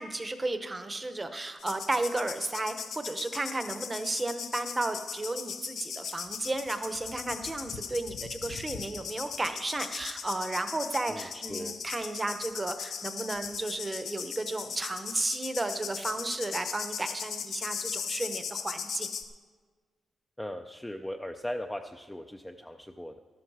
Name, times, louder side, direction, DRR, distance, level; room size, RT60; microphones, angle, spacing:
voice 1, 0.0-19.1, right 2 dB, 15° right, 9 dB, 0.8 m, -33 dB
sound 1, 1.6-19.2, left 7 dB, 65° left, 0.9 m, -38 dB
voice 2, 11.1-11.8 20.4-23.2, left 1 dB, 5° left, 5 dB, 0.4 m, -38 dB
13.5 x 12.5 x 4.8 m, 1.5 s
wide cardioid pair, 175°, 0 cm